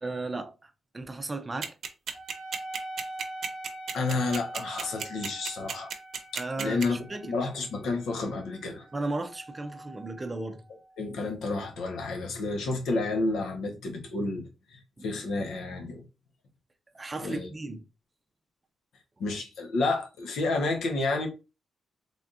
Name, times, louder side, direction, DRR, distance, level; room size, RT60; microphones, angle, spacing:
voice 1, 0.0-1.7 6.4-7.4 8.9-10.6 15.0-15.1 16.9-17.8, right 2 dB, 20° right, 0.5 m, -35 dB
sound 1, 1.6-6.8, right 6 dB, 55° right, 0.7 m, -33 dB
Wind instrument woodwind instrument, 2.1-11.1, right 1 dB, 30° left, 1.8 m, -44 dB
voice 2, 3.9-5.9 6.3-8.9 11.0-16.0 17.2-17.5 19.2-21.3, left 3 dB, 90° left, 0.9 m, -30 dB
4.0 x 3.4 x 2.4 m
wide cardioid pair, 170°, 0 cm